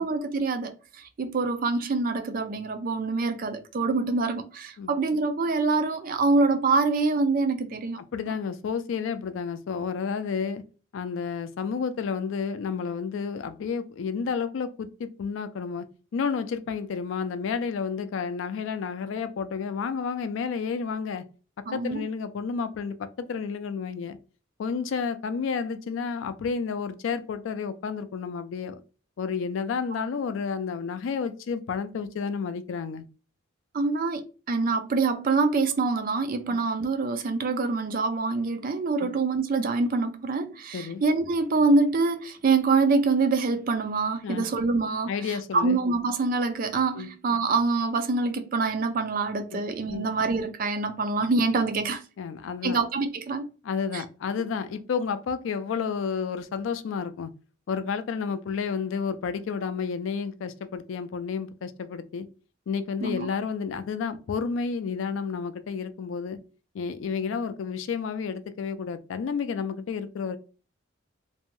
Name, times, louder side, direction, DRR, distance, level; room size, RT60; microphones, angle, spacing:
voice 1, 0.0-8.0 21.7-22.1 33.7-52.0 52.6-53.5 53.9-54.0 63.0-63.3, right 3 dB, 45° right, 0.4 m, -25 dB
voice 2, 8.1-10.6 10.9-15.9 16.1-21.2 21.7-24.2 24.6-28.8 29.2-33.0 36.5-36.6 39.0-39.1 40.7-41.0 44.2-44.5 45.1-45.8 46.9-47.1 49.5-49.6 49.9-50.1 52.2-52.8 53.6-57.3 57.7-62.3 62.7-66.4 66.7-70.4, left 6 dB, 70° left, 0.3 m, -31 dB
2.6 x 2.1 x 3.0 m
head